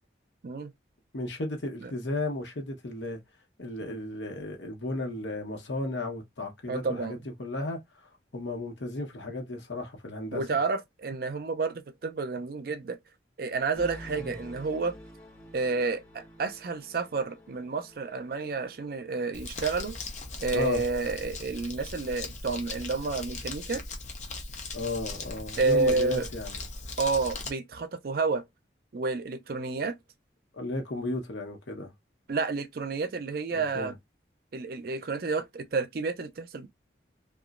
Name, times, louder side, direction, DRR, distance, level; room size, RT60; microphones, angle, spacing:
voice 1, 1.1-3.2 3.6-7.8 8.3-10.4 14.2-14.3 20.5-20.8 24.7-26.6 30.5-31.9 33.5-33.9, left 2 dB, 80° left, 1.0 m, -34 dB
voice 2, 6.7-7.2 10.3-13.0 13.4-15.0 15.5-20.0 20.4-23.8 25.6-26.3 27.0-28.4 28.9-29.9 32.3-34.0 34.5-36.7, right 4 dB, 55° right, 0.4 m, -30 dB
sound 1, 13.7-20.5, equal, 10° left, 0.7 m, -49 dB
Crumpling crinkling, 19.3-27.5, left 3 dB, 40° left, 0.6 m, -39 dB
2.9 x 2.3 x 2.4 m
head